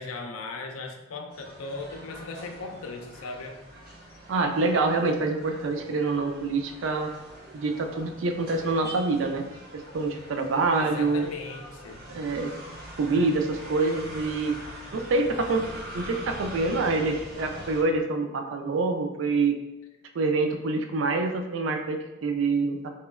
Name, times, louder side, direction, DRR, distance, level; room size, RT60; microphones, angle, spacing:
voice 1, 0.0-3.6 10.8-12.0, left 3 dB, 90° left, 4 dB, 0.4 m, -38 dB
sound 1, 1.3-17.8, right 1 dB, 45° right, 1.2 m, -43 dB
voice 2, 4.3-7.1 7.5-9.4 9.9-11.3 12.1-12.5 13.0-14.5 14.9-15.6 15.9-19.5 20.1-22.8, right 3 dB, 65° right, 4 dB, 0.4 m, -26 dB
3.0 x 2.9 x 2.3 m, 1.0 s
head